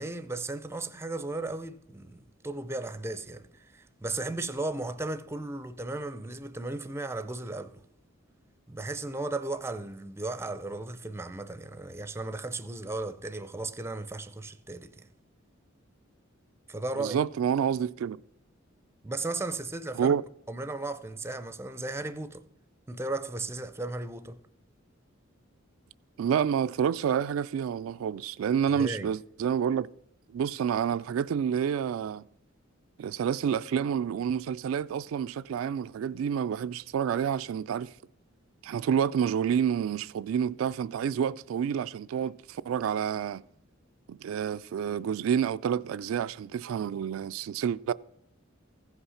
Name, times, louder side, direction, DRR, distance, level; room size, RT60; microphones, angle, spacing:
voice 1, 0.0-7.8 8.7-15.1 16.7-17.2 19.0-20.1 20.5-22.4 22.9-24.4 28.7-29.1, right 2 dB, 15° right, 0.5 m, -35 dB
voice 2, 17.0-18.2 20.0-20.2 26.2-29.9 30.3-32.2 33.0-37.9 38.6-43.4 44.1-47.9, right 8 dB, 90° right, 0.3 m, -29 dB
15.5 x 5.6 x 5.7 m
head